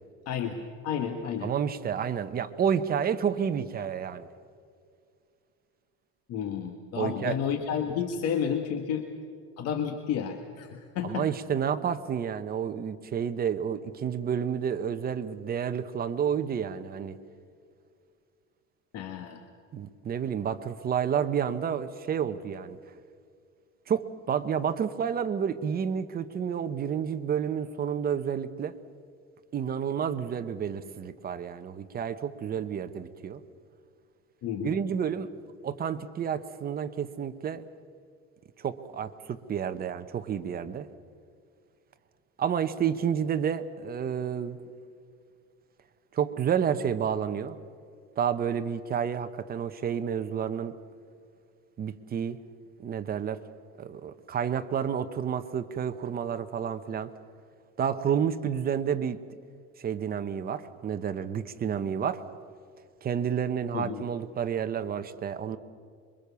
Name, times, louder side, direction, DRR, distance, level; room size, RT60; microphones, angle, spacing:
voice 1, 0.2-1.5 6.3-9.0 9.6-11.3 18.9-19.4 34.4-34.8 63.7-64.0, left 8 dB, 55° left, 5 dB, 1.7 m, -31 dB
voice 2, 1.4-4.3 7.0-7.4 11.0-17.2 19.7-22.8 23.9-28.8 29.5-33.4 34.6-35.3 35.6-37.6 38.6-40.9 42.4-44.6 46.1-47.6 48.2-50.7 51.8-52.4 52.8-53.4 53.8-57.1 57.8-59.2 59.8-62.2 63.0-65.6, right 8 dB, 30° right, 10 dB, 1.0 m, -30 dB
26.0 x 23.5 x 7.0 m, 2.3 s
cardioid pair, 150°, 30 cm